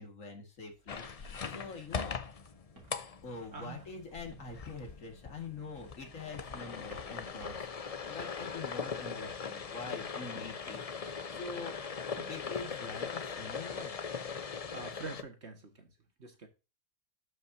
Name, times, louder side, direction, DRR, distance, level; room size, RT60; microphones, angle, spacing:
voice 1, 0.0-2.2 3.2-11.8 12.3-13.9, left 4 dB, 65° left, 2.3 m, -45 dB
sound 1, 0.6-12.8, right 3 dB, 80° right, 3.3 m, -60 dB
sound 2, 0.9-15.2, left 6 dB, 45° left, 0.5 m, -40 dB
voice 2, 14.7-15.9 16.2-16.5, right 4 dB, 50° right, 2.0 m, -45 dB
12.5 x 5.6 x 2.7 m
omnidirectional pair, 1.5 m